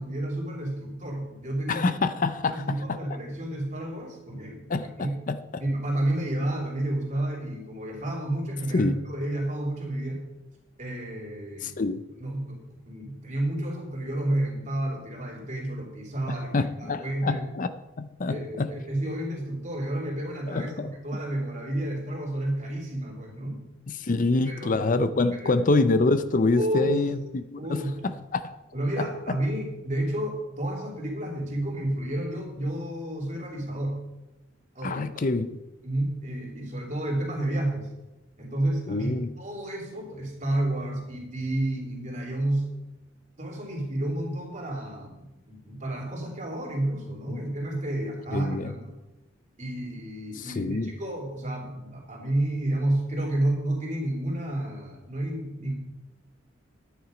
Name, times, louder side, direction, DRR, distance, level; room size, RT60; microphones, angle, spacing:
voice 1, 0.0-1.9 2.5-5.2 5.6-10.2 10.8-11.7 12.2-17.5 18.3-20.7 21.0-23.6 24.4-24.9 25.4-25.6 26.6-27.0 27.6-27.9 28.7-34.0 34.7-35.0 35.8-37.9 38.4-39.1 39.4-42.7 43.4-48.9 49.6-55.7, right 1 dB, 40° right, 0 dB, 3.2 m, -30 dB
voice 2, 1.7-3.0 4.7-5.4 8.7-8.9 11.6-12.0 16.5-17.7 18.0-18.7 20.5-20.9 23.9-28.4 29.0-29.1 34.8-35.6 38.9-39.3 47.3-47.4 48.3-48.7 50.4-50.9, left 3 dB, 45° left, 12 dB, 0.6 m, -26 dB
11.0 x 9.6 x 5.1 m, 1.0 s
head